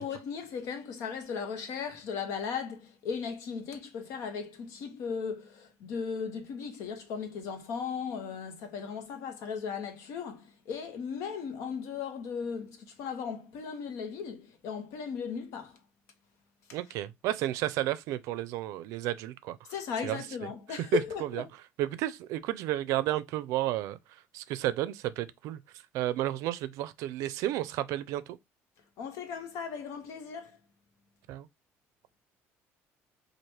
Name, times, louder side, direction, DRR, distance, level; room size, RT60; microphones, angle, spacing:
voice 1, 0.0-15.8 19.7-21.4 29.0-30.6, left 6 dB, 75° left, 1.0 m, -37 dB
voice 2, 16.7-19.6 20.0-20.2 20.9-21.0 21.3-21.4 21.8-24.0 24.3-25.6 25.9-28.4 31.3-31.5, right 14 dB, 75° right, 0.4 m, -32 dB
3.2 x 2.5 x 4.3 m
cardioid pair, 130°, 5 cm